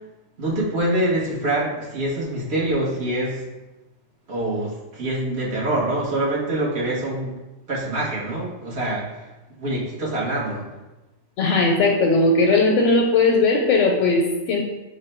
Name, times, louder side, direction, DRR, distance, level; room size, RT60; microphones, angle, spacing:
voice 1, 0.4-3.5 4.3-7.4 7.7-9.1 9.6-10.6, right 1 dB, 65° right, -5 dB, 1.4 m, -25 dB
voice 2, 11.4-14.6, left 3 dB, 80° left, 0 dB, 0.9 m, -18 dB
4.8 x 2.1 x 4.3 m, 1.0 s
omnidirectional pair, 1.2 m